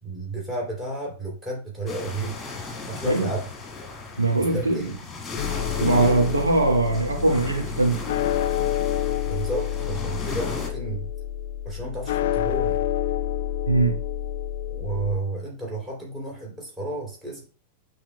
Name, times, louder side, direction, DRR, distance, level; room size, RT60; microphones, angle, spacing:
voice 1, 0.0-2.3 2.9-3.5 4.5-4.9 9.3-11.1 11.6-12.8 14.7-17.5, right 2 dB, 10° right, -2 dB, 3.2 m, -32 dB
sound 1, 1.9-10.7, left 3 dB, 15° left, 2.1 m, -36 dB
voice 2, 4.2-4.9 5.8-8.0 13.7-14.0, right 2 dB, 80° right, 1 dB, 2.0 m, -21 dB
sound 2, 5.4-15.2, left 11 dB, 55° left, 0.3 m, -28 dB
10.5 x 4.3 x 2.2 m, 0.36 s
figure-of-eight pair, 90°, 0 cm